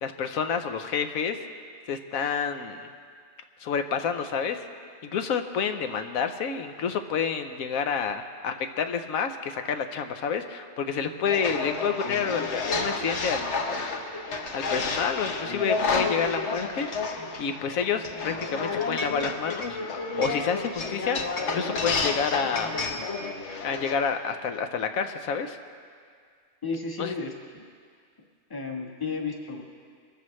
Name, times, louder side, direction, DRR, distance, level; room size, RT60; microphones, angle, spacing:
voice 1, 0.0-1.4 1.9-2.9 3.6-4.7 5.0-13.9 14.5-22.7 23.6-25.6 27.0-27.1, left 6 dB, 85° left, 7 dB, 1.2 m, -29 dB
sound 1, 11.3-23.9, left 3 dB, 60° left, 1.3 m, -30 dB
voice 2, 26.6-27.7 28.5-29.6, left 4 dB, 15° left, 0 dB, 1.3 m, -33 dB
23.0 x 14.0 x 3.2 m, 2.1 s
omnidirectional pair, 1.4 m